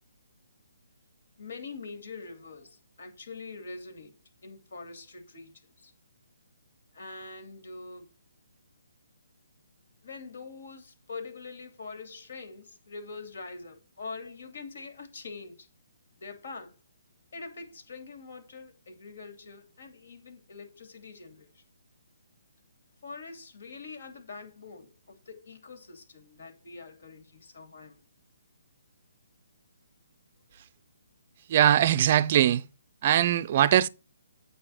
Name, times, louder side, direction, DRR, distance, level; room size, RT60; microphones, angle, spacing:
voice 1, 1.4-4.1 4.4-5.9 6.9-8.1 10.0-15.7 16.2-16.7 17.3-21.6 23.0-28.0 30.5-30.6, left 4 dB, 60° left, 2.7 m, -44 dB
voice 2, 31.5-32.6 33.0-33.9, right 11 dB, 35° right, 0.5 m, -21 dB
8.8 x 5.2 x 4.3 m
hypercardioid pair, 165°, 0 cm